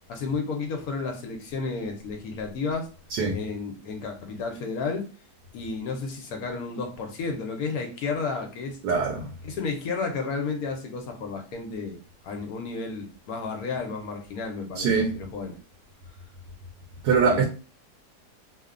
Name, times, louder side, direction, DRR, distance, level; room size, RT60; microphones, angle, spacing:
voice 1, 0.1-2.9 3.3-5.1 5.5-8.8 9.4-12.0 12.2-15.6 17.2-17.4, left 4 dB, 70° left, 1.0 m, -32 dB
voice 2, 8.8-9.3 14.8-15.1 17.0-17.4, right 5 dB, 75° right, 1.1 m, -22 dB
2.9 x 2.1 x 2.4 m
omnidirectional pair, 1.8 m